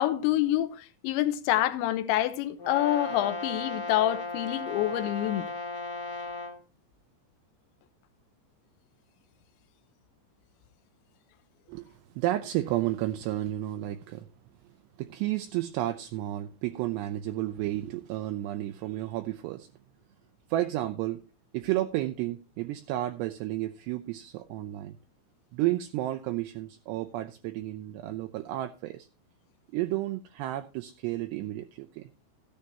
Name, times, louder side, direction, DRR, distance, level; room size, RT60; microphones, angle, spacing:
voice 1, 0.0-5.5, left 13 dB, 80° left, 3.1 m, -27 dB
Brass instrument, 2.6-6.6, left 3 dB, 35° left, 1.8 m, -36 dB
voice 2, 11.7-14.3 15.0-19.7 20.5-21.2 21.5-25.0 25.5-29.1 29.7-32.1, right 15 dB, 80° right, 2.5 m, -32 dB
14.5 x 10.0 x 2.9 m
omnidirectional pair, 5.5 m